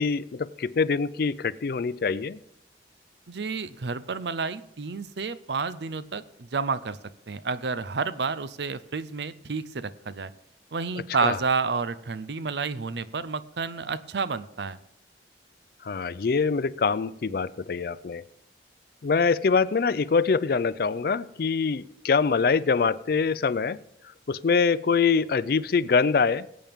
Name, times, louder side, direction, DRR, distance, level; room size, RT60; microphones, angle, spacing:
voice 1, 0.0-2.4 11.2-11.4 15.8-18.2 19.0-23.8 24.3-26.5, left 5 dB, 55° left, 17 dB, 0.4 m, -24 dB
voice 2, 3.3-7.0 7.3-10.3 10.7-14.8, right 5 dB, 70° right, 15 dB, 0.6 m, -30 dB
21.0 x 8.7 x 3.6 m, 0.76 s
head